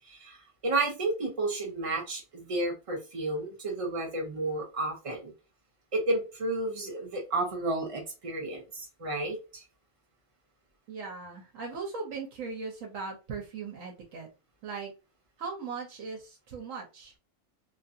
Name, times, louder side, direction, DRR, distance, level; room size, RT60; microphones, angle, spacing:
voice 1, 0.0-5.3 5.9-9.6, right 2 dB, 60° right, 0 dB, 0.3 m, -32 dB
voice 2, 10.9-14.3 14.6-14.9 15.4-17.1, right 4 dB, 75° right, 0 dB, 1.0 m, -38 dB
2.8 x 2.4 x 2.6 m, 0.30 s
omnidirectional pair, 1.4 m